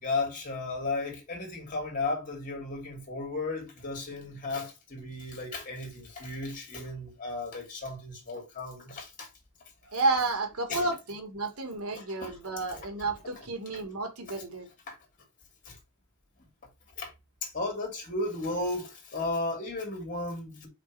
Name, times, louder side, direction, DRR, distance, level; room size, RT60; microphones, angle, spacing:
voice 1, 0.0-9.3 10.7-10.9 11.9-12.3 12.7-12.8 14.9-15.0 15.6-15.8 17.0-17.1 17.4-20.7, left 2 dB, 40° left, 2.9 m, -34 dB
voice 2, 9.9-14.7, right 3 dB, 85° right, 1.8 m, -31 dB
5.1 x 4.3 x 4.7 m
head